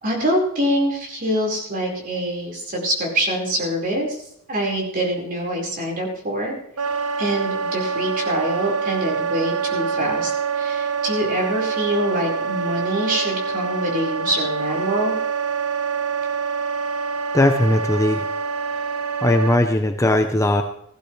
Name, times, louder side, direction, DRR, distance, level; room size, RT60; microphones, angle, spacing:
voice 1, 0.0-4.2 4.5-6.6 7.2-15.1, equal, 40° right, -1 dB, 4.8 m, -25 dB
Wind instrument woodwind instrument, 6.8-19.6, right 5 dB, 80° right, 1.1 m, -25 dB
voice 2, 17.3-18.3 18.7-18.8 19.2-20.6, left 1 dB, 15° left, 5 dB, 0.7 m, -18 dB
17.0 x 15.0 x 3.3 m, 0.70 s
head